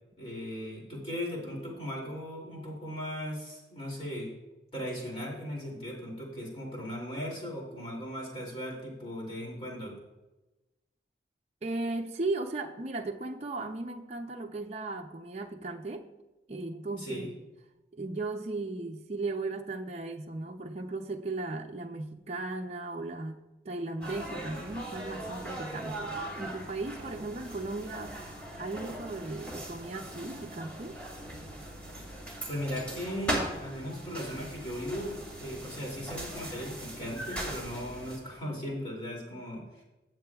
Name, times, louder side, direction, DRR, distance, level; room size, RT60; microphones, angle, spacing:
voice 1, 0.2-4.3 4.7-10.0 17.0-17.3 32.5-35.1 35.4-39.8, equal, 30° left, -3 dB, 2.7 m, -37 dB
voice 2, 11.6-16.1 16.5-17.3 17.9-28.2 28.6-31.0, right 2 dB, 35° right, 2 dB, 0.6 m, -36 dB
sound 1, 24.0-38.2, right 1 dB, 5° left, 2.3 m, -39 dB
15.5 x 7.5 x 2.4 m, 1.0 s
head